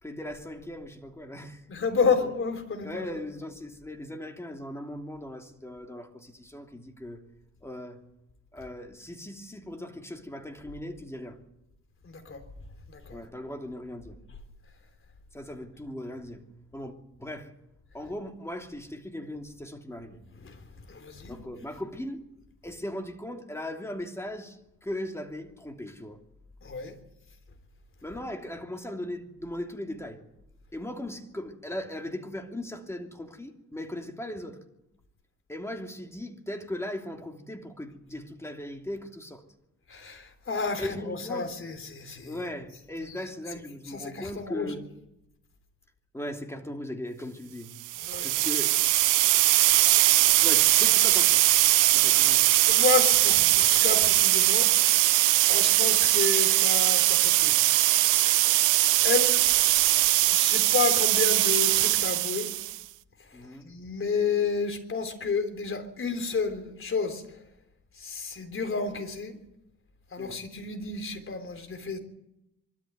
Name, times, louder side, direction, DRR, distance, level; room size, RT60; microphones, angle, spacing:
voice 1, 0.0-1.6 2.2-2.3 2.8-7.2 7.6-8.0 8.5-11.4 13.1-14.2 15.3-16.4 16.7-16.9 17.2-17.5 17.9-20.2 21.3-22.2 22.6-24.6 24.8-26.2 28.0-30.2 30.7-34.6 35.5-39.4 40.8-41.5 42.2-44.9 46.1-47.7 48.2-48.7 50.3-51.5 51.9-52.5 63.3-63.7 70.2-70.4, left 1 dB, 10° left, 2.9 m, -38 dB
voice 2, 1.7-3.1 12.0-12.4 12.9-13.2 20.4-20.6 20.9-21.4 26.6-26.9 39.9-42.5 43.0-44.7 48.0-48.4 52.6-54.7 55.5-57.6 59.0-59.4 60.3-62.5 63.6-67.2 68.0-69.3 70.1-72.0, left 5 dB, 45° left, 3.6 m, -30 dB
sound 1, 47.8-62.8, right 16 dB, 90° right, 0.7 m, -21 dB
23.5 x 13.0 x 9.3 m
cardioid pair, 90°, 30 cm